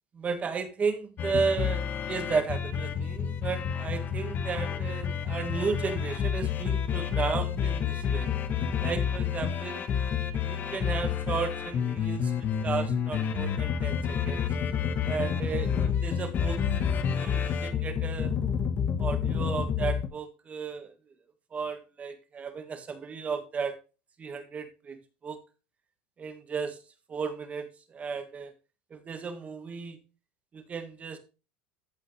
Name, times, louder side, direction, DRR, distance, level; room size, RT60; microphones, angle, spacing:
voice 1, 0.2-8.3 8.8-9.8 10.4-14.4 15.0-16.6 17.1-18.3 19.0-20.9 21.5-23.7 24.2-25.4 26.2-26.8 27.1-28.5 28.9-30.0 30.5-31.2, right 5 dB, 30° right, 8 dB, 1.7 m, -34 dB
Loving Forrest, 1.2-20.1, left 7 dB, 40° left, 1.2 m, -29 dB
14.0 x 5.4 x 3.3 m, 0.31 s
supercardioid pair, 110°, 5 cm